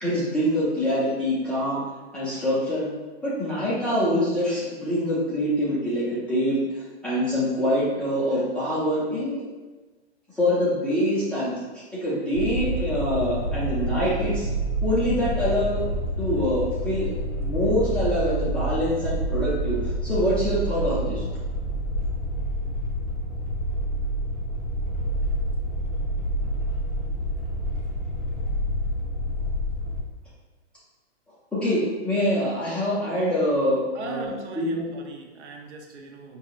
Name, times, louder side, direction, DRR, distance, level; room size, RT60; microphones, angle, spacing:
voice 1, 0.0-1.8 2.1-2.9 3.2-9.4 10.3-11.6 11.9-14.5 14.8-15.9 16.2-17.1 17.4-19.8 20.0-21.2 31.5-34.8, equal, 5° left, -11 dB, 0.6 m, -25 dB
sound 1, 12.3-30.0, right 1 dB, 35° left, 0.8 m, -28 dB
voice 2, 33.9-36.4, right 4 dB, 75° right, 2 dB, 0.8 m, -39 dB
5.3 x 2.8 x 2.5 m, 1.2 s
hypercardioid pair, 155°, 35 cm